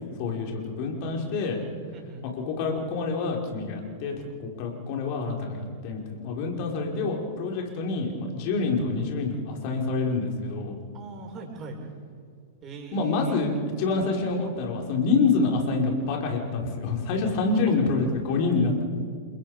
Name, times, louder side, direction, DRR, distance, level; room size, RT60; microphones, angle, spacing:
voice 1, 0.2-1.6 2.3-4.1 4.4-10.7 12.9-13.5 13.8-18.8, left 4 dB, 45° left, 1 dB, 5.6 m, -27 dB
voice 2, 1.9-2.3 10.9-11.8 12.6-13.4 17.7-17.8, right 3 dB, 30° right, 1 dB, 6.8 m, -40 dB
30.0 x 26.5 x 5.4 m, 2.1 s
figure-of-eight pair, 100°, 0 cm